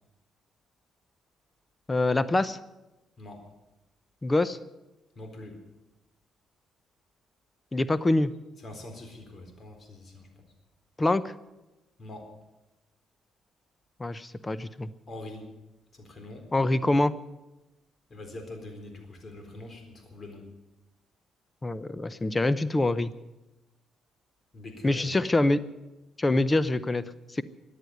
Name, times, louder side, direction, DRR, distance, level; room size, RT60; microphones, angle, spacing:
voice 1, 1.9-2.6 4.2-4.6 7.7-8.3 11.0-11.3 14.0-14.9 16.5-17.1 21.6-23.1 24.8-25.6 26.2-27.0 27.3-27.4, left 2 dB, 20° left, 16 dB, 0.7 m, -25 dB
voice 2, 5.2-5.6 8.6-10.4 12.0-12.3 15.1-15.5 15.9-16.5 18.1-20.5 24.5-25.1, left 2 dB, 40° left, 5 dB, 4.0 m, -43 dB
14.5 x 10.0 x 9.4 m, 1.0 s
cardioid pair, 90°, 0 cm